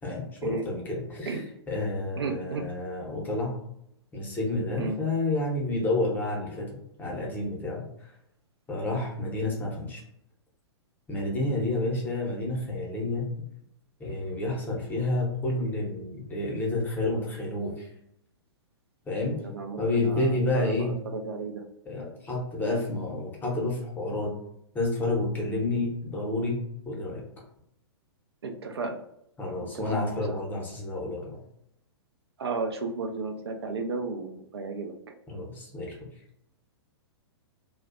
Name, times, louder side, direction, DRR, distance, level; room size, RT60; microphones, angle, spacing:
voice 1, 0.0-1.4 1.7-3.5 4.1-8.1 8.7-10.0 11.1-13.3 14.0-17.9 19.0-19.4 19.8-21.0 21.9-24.4 24.7-27.2 29.4-31.4 35.3-36.1, left 2 dB, 15° left, -2 dB, 0.7 m, -30 dB
voice 2, 2.2-2.7 4.8-5.0 19.3-20.7 21.1-21.6 28.4-29.0 29.7-30.4 32.4-34.9, right 4 dB, 65° right, 4 dB, 0.4 m, -33 dB
2.4 x 2.1 x 2.4 m, 0.75 s
figure-of-eight pair, 110°, 14 cm